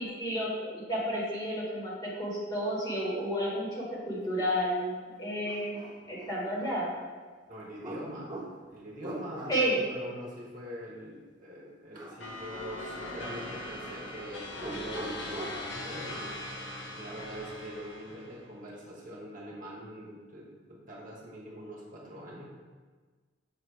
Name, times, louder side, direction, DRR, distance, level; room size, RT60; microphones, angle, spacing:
voice 1, 0.0-6.9 9.5-9.8, equal, 20° left, -6 dB, 1.5 m, -31 dB
sound 1, 4.8-4.9 5.4-6.8 7.8-9.8 11.9-12.4 12.6-13.8 14.5-15.7, right 2 dB, 25° right, 0.5 m, -43 dB
voice 2, 7.5-8.3 8.7-22.5, equal, 45° right, -4 dB, 1.1 m, -43 dB
sound 2, 12.2-18.4, left 1 dB, 75° left, 0.9 m, -40 dB
7.1 x 2.8 x 4.7 m, 1.4 s
head